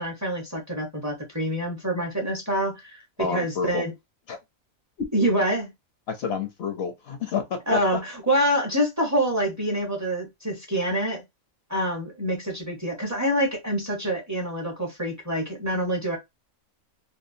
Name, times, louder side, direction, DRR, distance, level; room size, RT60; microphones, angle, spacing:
voice 1, 0.0-3.9 5.1-5.7 7.7-11.2 11.7-16.2, right 1 dB, 20° right, 0.5 m, -26 dB
voice 2, 3.2-3.8 4.3-4.4 6.1-8.0, left 5 dB, 65° left, 0.7 m, -29 dB
2.7 x 2.2 x 2.5 m
omnidirectional pair, 1.4 m